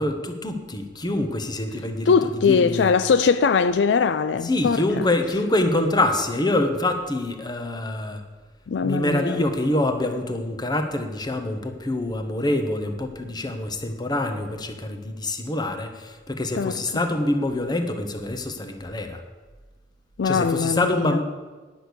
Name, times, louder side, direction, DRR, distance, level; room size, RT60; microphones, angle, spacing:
voice 1, 0.0-2.9 4.4-8.2 8.8-19.2 20.2-21.2, left 1 dB, 25° left, 1.1 m, -25 dB
voice 2, 2.1-4.8 8.7-9.4 16.6-16.7 20.2-21.2, left 5 dB, 70° left, 0.4 m, -21 dB
10.0 x 6.3 x 8.3 m
head